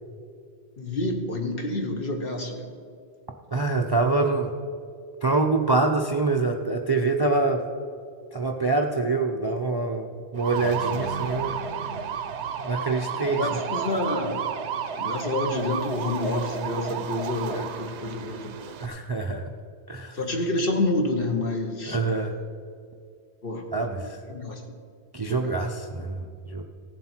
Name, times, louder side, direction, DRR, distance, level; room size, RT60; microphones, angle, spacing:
voice 1, 0.8-2.7 13.3-14.4 15.0-18.7 20.1-22.3 23.4-23.6 24.3-24.6 25.2-25.5, left 2 dB, 55° left, 2 dB, 1.4 m, -28 dB
voice 2, 3.5-4.5 5.2-7.6 8.3-11.5 12.6-13.5 17.5-17.7 18.8-19.4 19.9-20.2 21.9-22.3 23.7-24.2 25.1-26.6, right 3 dB, 30° right, 4 dB, 0.5 m, -25 dB
sound 1, 10.4-18.9, right 7 dB, 80° right, 1.0 m, -32 dB
16.5 x 7.3 x 4.4 m, 2.3 s
omnidirectional pair, 1.1 m